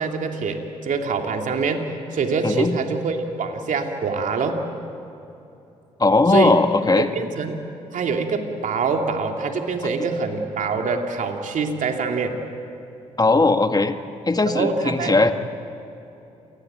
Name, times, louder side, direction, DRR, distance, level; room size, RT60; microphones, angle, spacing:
voice 1, 0.0-4.7 6.3-6.5 7.1-7.6 7.9-12.4 14.4-15.1, right 4 dB, 60° right, 3 dB, 2.8 m, -25 dB
voice 2, 2.4-2.8 6.0-7.1 13.2-14.0 14.3-15.3, left 3 dB, 25° left, 7 dB, 1.9 m, -18 dB
28.0 x 18.5 x 9.0 m, 2.8 s
hypercardioid pair, 45°, 15 cm